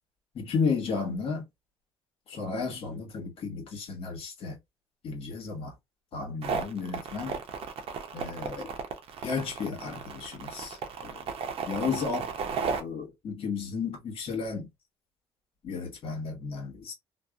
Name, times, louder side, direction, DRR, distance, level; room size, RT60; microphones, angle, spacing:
voice 1, 0.3-1.4 2.3-4.6 5.0-5.7 6.1-7.4 8.1-8.7 9.2-11.2 11.7-12.3 12.8-14.7 15.6-16.9, left 5 dB, 65° left, 1.1 m, -33 dB
sound 1, 6.4-12.8, right 5 dB, 65° right, 0.6 m, -34 dB
2.7 x 2.2 x 2.2 m
cardioid pair, 80°, 11 cm